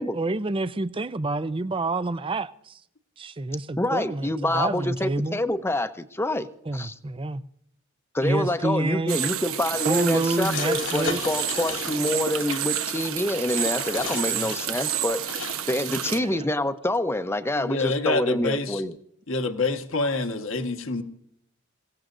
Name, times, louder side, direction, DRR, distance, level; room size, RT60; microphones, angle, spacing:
voice 1, 0.0-2.8 3.2-5.4 6.7-7.4 8.2-9.2 9.8-11.2 14.3-14.6 16.1-16.4, right 2 dB, 25° right, 0.5 m, -28 dB
voice 2, 3.8-6.9 8.1-15.2 15.7-18.9, left 1 dB, 10° left, 0.8 m, -27 dB
sound 1, 9.1-16.2, right 9 dB, 90° right, 1.0 m, -30 dB
sound 2, 10.4-12.6 13.5-15.6, left 5 dB, 90° left, 3.4 m, -35 dB
voice 3, 17.5-18.8 19.3-21.0, left 3 dB, 70° left, 1.4 m, -26 dB
28.0 x 17.0 x 2.6 m
head